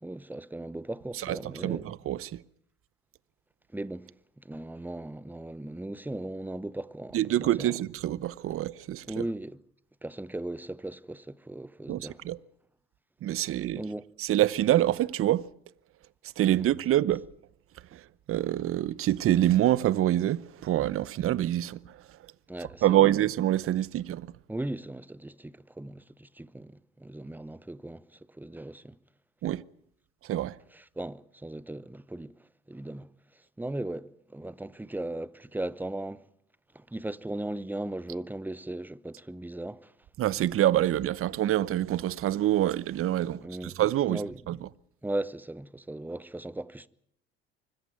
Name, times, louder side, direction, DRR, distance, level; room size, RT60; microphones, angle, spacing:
voice 1, 0.0-1.8 3.7-4.1 4.4-7.8 9.1-9.6 10.0-12.2 13.7-14.0 16.5-16.7 22.5-23.1 24.5-29.0 30.7-32.3 32.7-33.1 33.6-36.2 36.7-39.9 43.4-43.7 44.1-44.4 45.0-46.9, right 1 dB, 5° right, 0.9 m, -37 dB
voice 2, 1.2-2.4 7.1-9.0 11.9-12.4 13.2-13.8 14.2-15.5 16.4-17.3 17.9-18.0 18.3-22.0 22.8-24.3 29.4-29.6 30.2-30.6 40.2-44.7, right 13 dB, 45° right, 0.8 m, -26 dB
25.0 x 14.5 x 9.4 m
hypercardioid pair, 75°, 31 cm